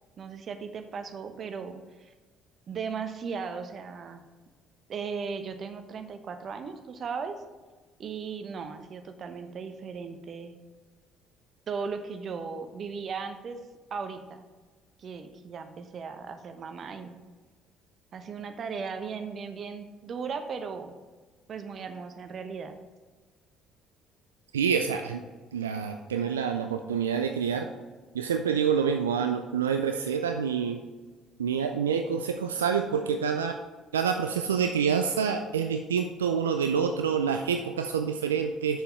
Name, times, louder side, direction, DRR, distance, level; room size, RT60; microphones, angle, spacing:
voice 1, 0.2-2.1 2.7-4.2 4.9-7.4 8.0-10.5 11.7-13.6 13.9-14.4 15.0-17.2 18.1-20.9 21.5-22.8, right 5 dB, 50° right, 8 dB, 0.9 m, -37 dB
voice 2, 24.5-25.2 25.5-27.7 28.1-30.8 31.4-33.6 33.9-38.8, right 7 dB, 85° right, 6 dB, 0.4 m, -27 dB
7.7 x 6.8 x 4.6 m, 1.3 s
hypercardioid pair, 55°, 0 cm